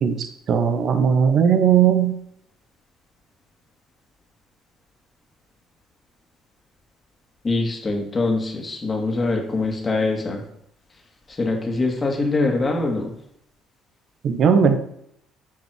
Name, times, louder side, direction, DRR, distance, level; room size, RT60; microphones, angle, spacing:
voice 1, 0.5-2.1 14.2-14.8, right 7 dB, 55° right, 8 dB, 0.9 m, -17 dB
voice 2, 7.4-10.4 11.4-13.1, left 3 dB, 30° left, 2 dB, 2.2 m, -23 dB
9.2 x 5.3 x 4.8 m, 0.73 s
hypercardioid pair, 50°, 0 cm